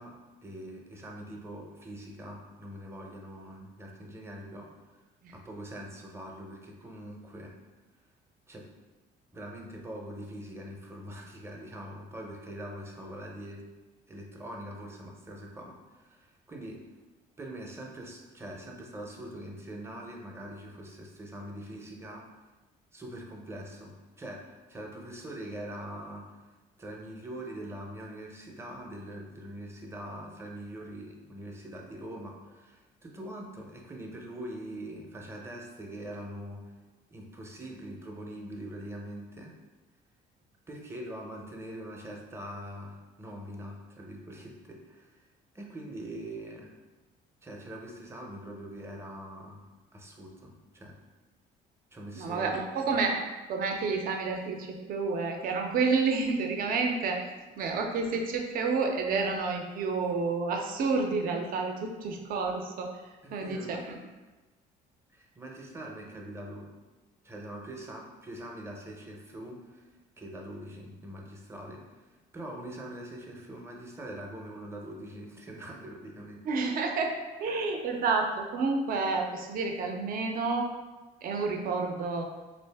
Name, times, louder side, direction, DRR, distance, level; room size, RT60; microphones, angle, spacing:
voice 1, 0.0-4.7 5.3-7.6 8.5-8.7 9.3-13.7 14.1-16.8 17.4-22.3 22.9-26.4 26.8-36.7 37.1-39.6 40.7-45.3 45.5-46.7 47.4-49.7 49.9-51.0 51.9-53.0 63.2-63.8 65.1-66.7 67.2-69.9 70.2-76.4, right 1 dB, 15° right, 0 dB, 0.6 m, -43 dB
voice 2, 52.2-53.1 53.5-62.9 63.3-64.0 76.4-80.7 81.2-82.2, right 4 dB, 60° right, 2 dB, 0.5 m, -30 dB
3.4 x 2.5 x 3.4 m, 1.2 s
cardioid pair, 110°, 17 cm